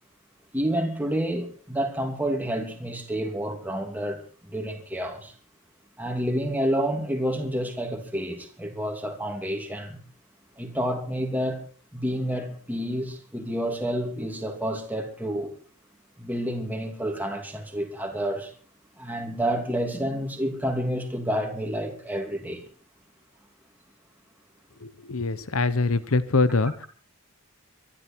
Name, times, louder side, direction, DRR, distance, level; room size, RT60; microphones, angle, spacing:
voice 1, 0.5-5.3 6.0-10.0 10.6-11.7 11.9-15.5 16.2-18.5 19.0-22.6, equal, 10° right, 2.9 m, -29 dB
voice 2, 24.8-26.9, left 3 dB, 70° left, 0.9 m, -24 dB
24.0 x 11.5 x 4.6 m
head